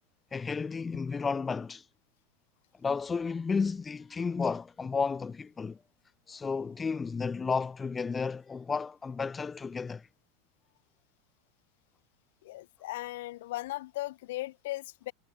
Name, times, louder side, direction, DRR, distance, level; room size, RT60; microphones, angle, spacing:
voice 1, 0.3-1.8 2.8-5.8 6.3-10.0, left 5 dB, 20° left, 1.5 m, -32 dB
voice 2, 12.4-15.1, left 17 dB, 70° left, 2.9 m, -37 dB
hypercardioid pair, 95°, 0 cm